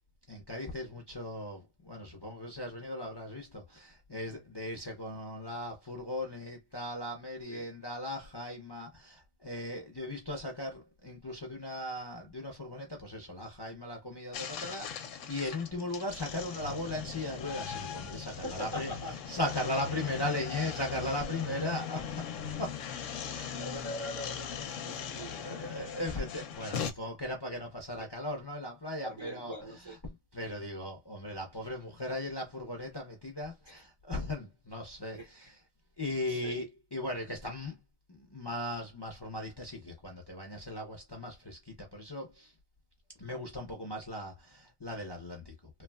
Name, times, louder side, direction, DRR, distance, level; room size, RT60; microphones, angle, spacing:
voice 1, 0.3-18.9 19.3-22.0 22.6-22.8 23.3-23.5 25.2-29.5 30.3-35.5 36.0-37.8 38.1-42.5 43.2-45.8, left 1 dB, 35° left, 0.3 m, -38 dB
sound 1, 14.3-26.9, left 7 dB, 70° left, 0.8 m, -39 dB
voice 2, 18.3-19.1 21.5-21.8 23.2-25.8 26.8-26.9 27.9-28.1 29.0-30.0 33.7-33.8 35.1-35.5 36.3-36.6, left 1 dB, 45° right, 0.3 m, -43 dB
3.2 x 2.2 x 2.2 m
omnidirectional pair, 1.5 m